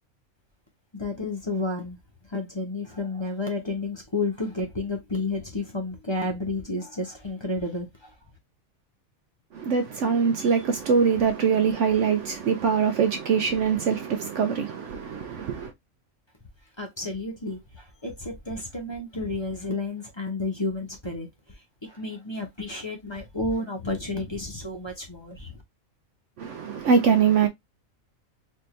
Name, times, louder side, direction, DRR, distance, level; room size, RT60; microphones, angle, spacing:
voice 1, 0.9-2.0 2.3-8.1 16.8-21.3 21.8-25.5, left 2 dB, 20° left, 1.0 m, -31 dB
voice 2, 9.5-15.7 26.4-27.5, right 6 dB, 65° right, 0.9 m, -23 dB
4.3 x 2.7 x 3.1 m
omnidirectional pair, 1.4 m